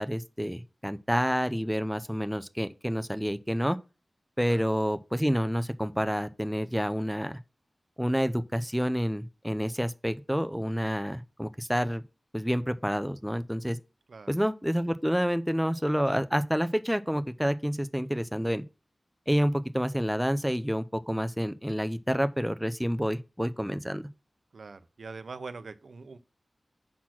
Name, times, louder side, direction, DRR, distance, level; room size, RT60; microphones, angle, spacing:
voice 1, 0.0-3.8 4.4-7.3 8.0-12.0 12.3-13.8 14.3-18.6 19.3-24.0, equal, ahead, 0.5 m, -28 dB
voice 2, 24.5-26.2, right 4 dB, 80° right, 0.6 m, -43 dB
5.8 x 4.2 x 5.9 m
wide cardioid pair, 55°, 0 cm